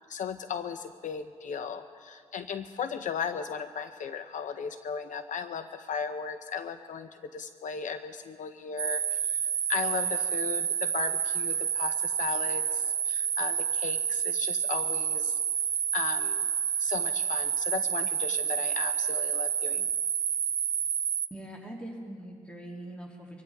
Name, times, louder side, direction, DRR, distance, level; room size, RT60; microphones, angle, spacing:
voice 1, 0.1-9.4 9.7-15.4 15.9-16.5 16.8-19.9, left 6 dB, 75° left, 9 dB, 0.6 m, -36 dB
sound 1, 8.8-21.3, right 8 dB, 70° right, 0.5 m, -29 dB
voice 2, 21.3-23.4, right 1 dB, 10° left, -2 dB, 2.7 m, -42 dB
25.0 x 15.5 x 3.5 m, 2.1 s
cardioid pair, 75°, 13 cm